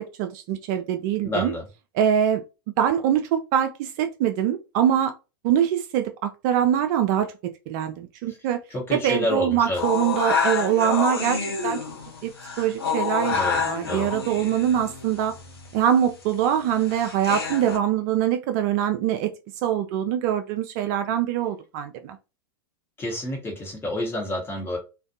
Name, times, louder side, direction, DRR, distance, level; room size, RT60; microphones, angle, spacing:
voice 1, 0.0-1.5 2.0-2.4 2.8-5.1 5.4-7.3 7.7-8.6 8.9-11.8 12.2-12.3 12.6-13.4 13.7-15.3 15.7-19.3 19.6-22.2, right 10 dB, 45° right, 0.3 m, -23 dB
voice 2, 1.2-1.7 8.3-8.4 8.7-9.8 13.3-14.1 23.0-24.8, left 1 dB, 20° left, 1.0 m, -29 dB
sound 1, 9.8-17.8, left 5 dB, 85° left, 0.7 m, -28 dB
2.4 x 2.2 x 2.6 m
hypercardioid pair, 95°, 12 cm